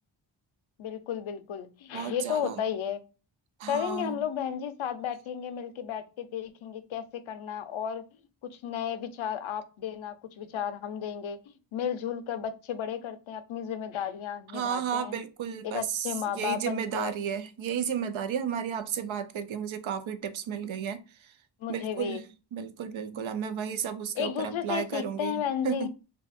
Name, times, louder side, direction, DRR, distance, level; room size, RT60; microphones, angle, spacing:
voice 1, 0.8-3.0 3.7-8.1 8.4-15.2 15.6-17.2 21.6-22.2 24.2-25.9, left 8 dB, 85° left, 0.6 m, -33 dB
voice 2, 1.9-2.6 3.6-4.1 14.5-21.4 21.7-25.9, right 8 dB, 75° right, 0.6 m, -33 dB
2.6 x 2.3 x 4.1 m
wide cardioid pair, 95°, 47 cm